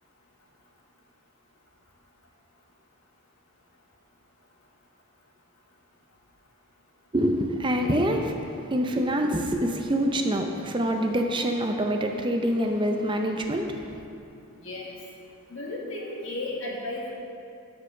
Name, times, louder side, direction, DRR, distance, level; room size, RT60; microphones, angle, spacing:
voice 1, 7.1-14.0, equal, 20° right, 3 dB, 0.5 m, -26 dB
voice 2, 14.6-15.0 15.5-17.1, left 2 dB, 65° left, -3 dB, 1.7 m, -34 dB
7.9 x 6.4 x 6.3 m, 2.6 s
head